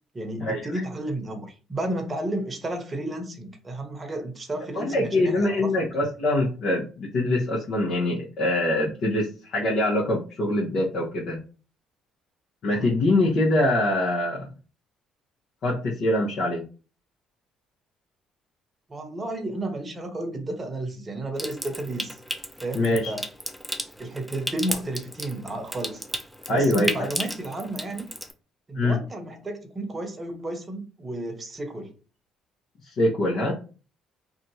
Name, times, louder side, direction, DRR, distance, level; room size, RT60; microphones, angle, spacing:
voice 1, 0.1-5.7 12.7-12.9 18.9-22.2 22.6-23.3 24.0-26.0 26.5-28.1 28.7-31.9, right 1 dB, 30° right, 5 dB, 0.8 m, -32 dB
voice 2, 4.7-11.4 12.6-14.5 15.6-16.6 22.7-23.1 26.5-26.9 28.8-29.0 32.8-33.5, left 1 dB, 60° left, -4 dB, 0.9 m, -24 dB
Water tap faucet / Sink (filling or washing) / Trickle dribble, 21.4-28.3, equal, 5° right, 0.6 m, -34 dB
2.7 x 2.3 x 2.8 m, 0.35 s
hypercardioid pair, 60°, 0 cm